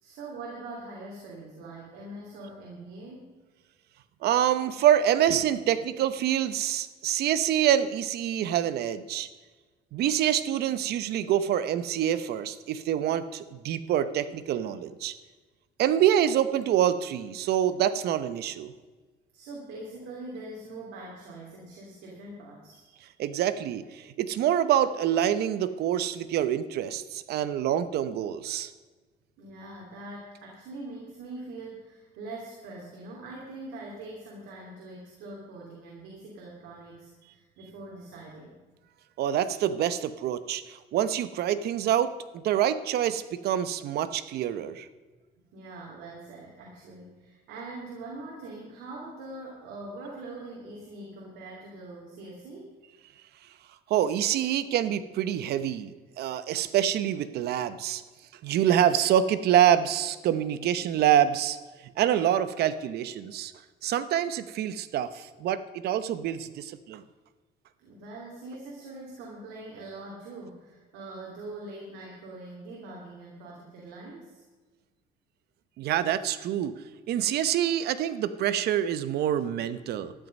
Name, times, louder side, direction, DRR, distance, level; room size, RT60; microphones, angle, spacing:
voice 1, 0.0-3.3 19.3-22.9 29.4-38.6 45.4-52.7 67.8-74.4, right 2 dB, 90° right, -2 dB, 3.0 m, -43 dB
voice 2, 4.2-9.3 9.9-15.1 15.8-18.7 23.2-28.7 39.2-44.9 53.9-58.0 58.4-61.6 61.8-63.5 63.8-67.0 75.8-76.8 77.1-80.1, right 10 dB, 70° right, 14 dB, 0.9 m, -26 dB
13.0 x 11.0 x 5.3 m, 1.3 s
cardioid pair, 110°, 17 cm